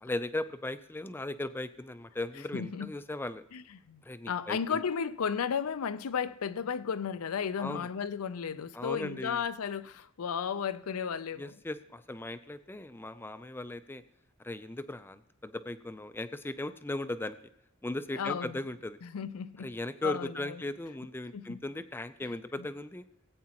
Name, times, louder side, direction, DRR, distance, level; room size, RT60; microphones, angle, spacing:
voice 1, 0.0-3.4 4.0-4.8 7.6-7.9 8.7-9.4 11.4-14.0 14.4-17.4 17.8-19.0 19.6-23.0, left 2 dB, 10° left, 0.4 m, -37 dB
voice 2, 2.5-2.9 3.5-11.5 18.1-18.6 19.0-19.7 20.0-20.6 21.3-21.6, left 7 dB, 90° left, 0.5 m, -34 dB
18.0 x 8.5 x 2.9 m
head